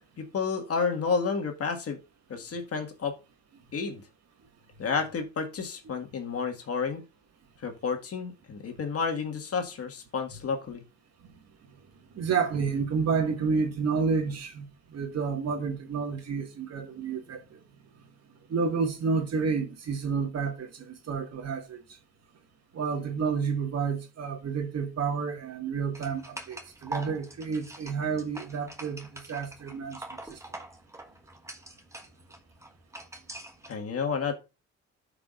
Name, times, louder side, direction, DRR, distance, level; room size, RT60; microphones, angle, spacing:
voice 1, 0.2-2.0 2.3-3.2 3.7-4.0 4.8-7.0 7.6-10.8 33.7-34.3, left 5 dB, 50° left, 1.7 m, -31 dB
voice 2, 12.1-17.4 18.5-21.8 22.7-30.4, right 5 dB, 55° right, 1.8 m, -30 dB
sound 1, 25.9-33.7, right 2 dB, 10° right, 1.3 m, -44 dB
13.5 x 4.9 x 2.4 m
cardioid pair, 90°, 30 cm